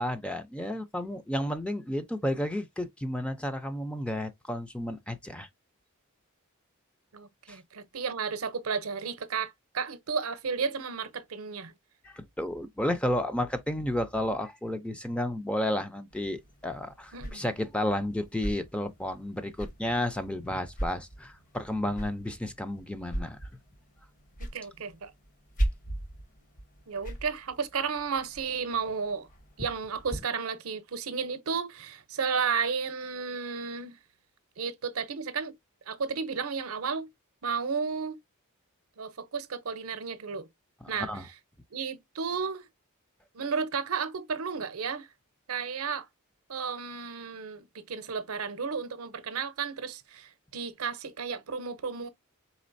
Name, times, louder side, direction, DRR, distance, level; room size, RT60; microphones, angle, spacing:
voice 1, 0.0-5.5 7.5-7.6 12.0-23.4 40.8-41.3, left 1 dB, 5° left, 0.4 m, -32 dB
voice 2, 7.1-11.7 17.1-17.4 24.5-25.1 26.9-29.3 29.6-34.0 34.6-35.5 35.9-37.1 37.4-38.2 39.0-40.5 40.9-41.1 41.7-42.7 43.3-45.1 45.5-46.1 46.5-52.1, right 5 dB, 70° right, 0.7 m, -33 dB
sound 1, 16.1-30.2, right 1 dB, 40° left, 1.0 m, -39 dB
4.2 x 3.7 x 2.5 m
head